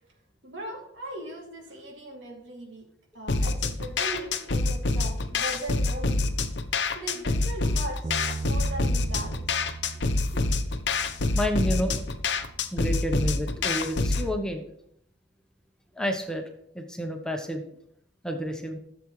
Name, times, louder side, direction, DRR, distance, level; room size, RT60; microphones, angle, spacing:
voice 1, 0.4-2.9 3.1-6.3 6.9-9.6 9.9-10.4, right 1 dB, 85° right, -1 dB, 2.9 m, -39 dB
sound 1, 3.3-14.3, left 3 dB, 75° left, 0.8 m, -26 dB
Bass guitar, 8.0-14.3, right 3 dB, 30° right, 0.3 m, -39 dB
voice 2, 11.3-12.0 12.7-14.6 15.9-16.4 16.7-17.6 18.2-18.8, equal, 5° left, 3 dB, 1.0 m, -30 dB
14.5 x 7.2 x 3.2 m, 0.69 s
head